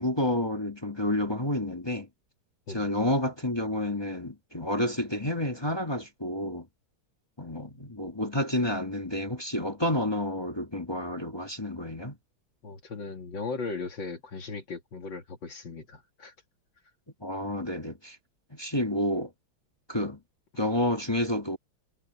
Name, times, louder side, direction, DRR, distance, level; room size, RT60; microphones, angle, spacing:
voice 1, 0.0-2.1 2.7-6.6 7.4-12.2 17.2-18.2 18.5-19.3 19.9-20.2 20.6-21.6, left 1 dB, 15° left, 1.7 m, -29 dB
voice 2, 12.6-16.3, left 4 dB, 65° left, 2.6 m, -37 dB
omnidirectional pair, 2.2 m